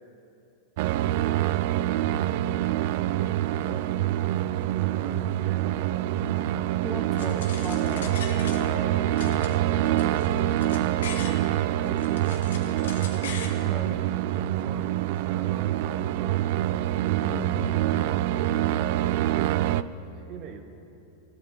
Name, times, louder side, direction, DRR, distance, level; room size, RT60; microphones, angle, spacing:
sound 1, 0.8-19.8, right 13 dB, 65° right, 0.5 m, -26 dB
voice 1, 2.9-3.9 4.8-7.6 11.0-13.4 14.3-15.0 15.2-16.7 17.4-18.2 18.9-20.6, right 6 dB, 45° right, 5 dB, 1.5 m, -44 dB
voice 2, 6.8-8.2 13.6-14.1 17.2-18.1, left 1 dB, 5° left, 2 dB, 1.7 m, -37 dB
sound 2, 7.2-8.9 9.2-11.4 11.8-13.6, left 6 dB, 85° left, 1.6 m, -40 dB
Wind instrument woodwind instrument, 7.8-13.4, left 9 dB, 40° left, 1.2 m, -46 dB
16.5 x 9.5 x 8.3 m, 2.8 s
hypercardioid pair, 120°, 0 cm